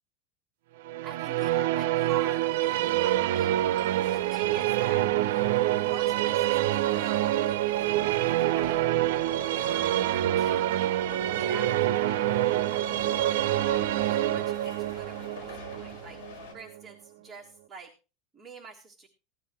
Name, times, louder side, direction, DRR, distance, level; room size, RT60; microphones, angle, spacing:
sound 1, 0.8-16.9, right 14 dB, 75° right, 0.5 m, -26 dB
voice 1, 1.0-3.6 4.1-5.1 5.8-9.0 9.4-11.0 11.3-13.4 14.0-16.2 16.5-17.9 18.3-19.1, right 5 dB, 15° right, -1 dB, 1.5 m, -46 dB
sound 2, 3.4-16.5, left 4 dB, 70° left, 5.1 m, -45 dB
16.0 x 12.0 x 3.1 m, 0.31 s
supercardioid pair, 170°, 0 cm